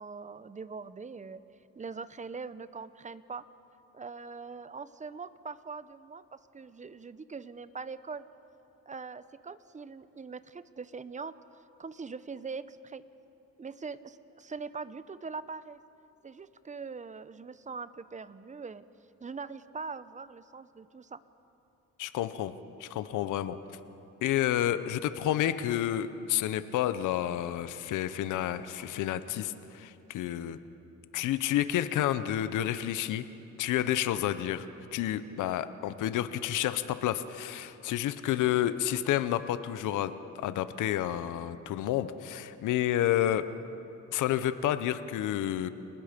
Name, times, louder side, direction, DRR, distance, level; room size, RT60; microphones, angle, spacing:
voice 1, 0.0-1.4 1.8-3.4 3.9-8.3 8.9-13.0 13.6-15.8 16.2-18.9 19.2-21.2, right 4 dB, 25° right, 15 dB, 0.8 m, -42 dB
voice 2, 22.0-22.5 22.8-23.6 24.2-30.6 31.1-33.2 33.6-34.7 34.9-43.5 44.1-45.7, left 12 dB, 85° left, 13 dB, 0.9 m, -30 dB
29.0 x 19.5 x 5.2 m, 2.9 s
cardioid pair, 90°, 30 cm